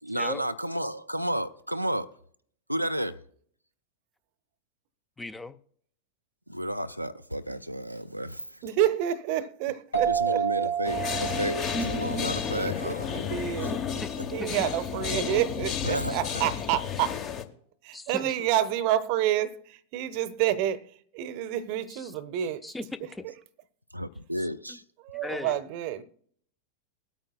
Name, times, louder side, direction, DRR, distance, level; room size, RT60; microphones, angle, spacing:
voice 1, 0.0-2.1 2.7-3.2 6.5-8.6 10.1-13.2 13.6-13.7 15.8-16.4 23.9-24.8, equal, 90° right, 0.4 m, -32 dB
voice 2, 5.2-5.6 14.0-14.1 14.4-14.6 16.1-16.2 17.9-18.3 21.9-22.1 22.6-23.2 25.2-25.6, left 2 dB, 10° left, 0.4 m, -37 dB
voice 3, 8.6-10.7 12.6-14.0 14.3-17.2 17.8-22.7 23.0-23.3 25.0-26.0, right 12 dB, 45° right, 0.7 m, -29 dB
sound 1, 9.9-13.2, right 8 dB, 75° left, 2.7 m, -30 dB
sound 2, 10.8-17.4, left 7 dB, 35° left, 0.9 m, -32 dB
20.5 x 8.7 x 2.3 m
figure-of-eight pair, 90°, 0 cm